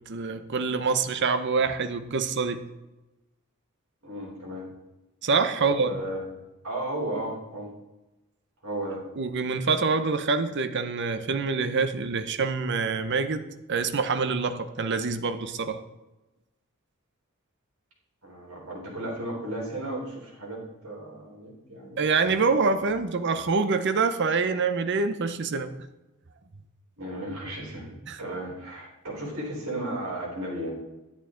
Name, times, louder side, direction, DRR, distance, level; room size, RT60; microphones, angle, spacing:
voice 1, 0.1-2.7 5.2-5.9 9.2-15.8 22.0-25.7 28.1-28.2, right 4 dB, 55° right, 10 dB, 0.7 m, -26 dB
voice 2, 4.0-4.6 5.6-6.2 6.6-7.7 8.6-9.0 18.2-22.4 27.0-27.9 28.2-30.7, right 1 dB, 70° right, -4 dB, 3.9 m, -34 dB
11.0 x 8.3 x 3.8 m, 1.0 s
head